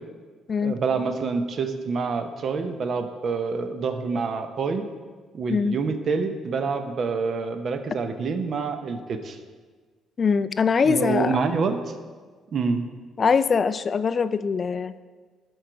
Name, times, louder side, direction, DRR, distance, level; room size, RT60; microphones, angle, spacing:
voice 1, 0.6-4.8 5.3-9.4 10.8-11.8 12.5-12.8, right 4 dB, 45° right, 8 dB, 0.7 m, -27 dB
voice 2, 10.2-11.4 13.2-14.9, left 5 dB, 35° left, 13 dB, 0.3 m, -22 dB
12.0 x 4.7 x 5.1 m, 1.5 s
cardioid pair, 125°, 0 cm